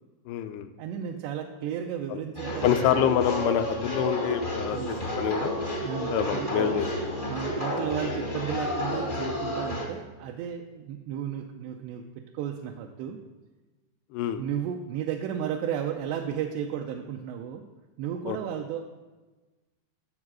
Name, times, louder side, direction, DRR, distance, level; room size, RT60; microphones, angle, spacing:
voice 1, 0.3-0.7 2.1-2.2 2.6-5.6 6.1-6.9 7.5-7.6 14.1-14.4 18.3-18.4, left 10 dB, 80° left, 9 dB, 2.4 m, -27 dB
voice 2, 0.8-3.1 4.7-5.1 5.8-6.8 7.3-12.0 12.3-13.2 14.4-17.6 18.0-18.8, right 9 dB, 80° right, 2 dB, 2.7 m, -34 dB
sound 1, 2.3-9.8, equal, 45° left, 0.6 m, -31 dB
12.0 x 7.3 x 6.1 m, 1.2 s
omnidirectional pair, 5.1 m